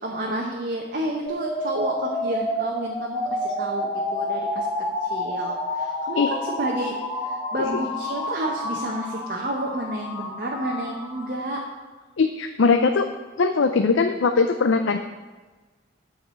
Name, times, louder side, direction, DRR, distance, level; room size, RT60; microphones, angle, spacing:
voice 1, 0.0-3.2 3.6-4.7 5.0-7.0 7.2-11.6, right 1 dB, 45° right, -1 dB, 1.0 m, -30 dB
sound 1, 1.3-11.3, left 1 dB, 15° left, 2.0 m, -29 dB
voice 2, 12.2-13.1 13.4-15.0, left 4 dB, 80° left, 7 dB, 0.5 m, -20 dB
8.6 x 4.8 x 7.5 m, 1.3 s
head